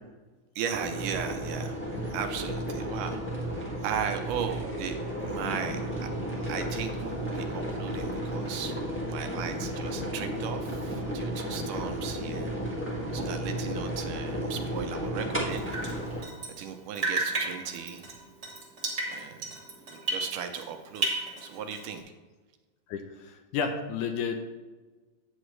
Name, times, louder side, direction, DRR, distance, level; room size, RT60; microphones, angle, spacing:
voice 1, 0.6-1.8 2.1-5.0 5.2-6.1 6.4-8.7 9.1-12.6 13.1-15.7 16.5-18.0 19.1-19.5 19.9-22.0, right 7 dB, 75° right, 6 dB, 2.1 m, -36 dB
sound 1, 0.7-16.2, right 1 dB, 15° left, 0.4 m, -33 dB
Drip, 15.5-16.7 16.9-20.7 20.9-22.0, right 2 dB, 60° right, 0.7 m, -33 dB
voice 2, 22.9-24.4, left 6 dB, 75° left, 5 dB, 2.1 m, -31 dB
9.0 x 8.9 x 3.1 m, 1.3 s
omnidirectional pair, 3.9 m